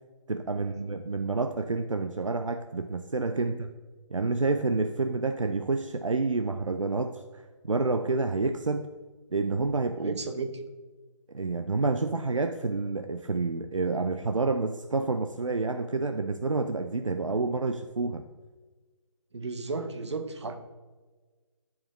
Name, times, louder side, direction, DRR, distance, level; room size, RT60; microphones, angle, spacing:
voice 1, 0.3-3.7 4.1-7.2 7.6-8.9 9.3-10.2 11.3-18.2, right 3 dB, 85° right, 7 dB, 0.5 m, -28 dB
voice 2, 10.0-10.6 19.3-20.5, right 3 dB, 65° right, 7 dB, 0.9 m, -34 dB
12.0 x 4.8 x 3.0 m, 1.3 s
figure-of-eight pair, 145°, 16 cm